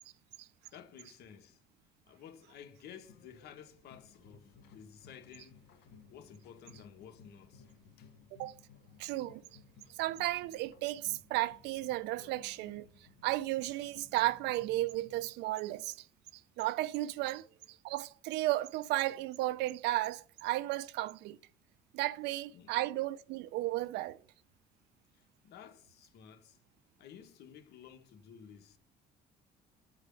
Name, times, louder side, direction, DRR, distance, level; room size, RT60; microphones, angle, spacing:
voice 1, 0.7-1.6 2.0-5.8 6.1-7.7 8.0-8.1 17.2-17.3 22.5-22.8 25.1-26.6 27.0-28.8, left 8 dB, 75° left, 1.5 m, -54 dB
sound 1, 3.0-15.3, left 5 dB, 90° left, 2.2 m, -59 dB
voice 2, 9.0-9.4 10.0-12.9 13.2-16.0 16.6-17.5 17.8-21.4 21.9-24.2, right 16 dB, 90° right, 0.6 m, -34 dB
9.2 x 4.8 x 7.6 m
cardioid pair, 110°, 17 cm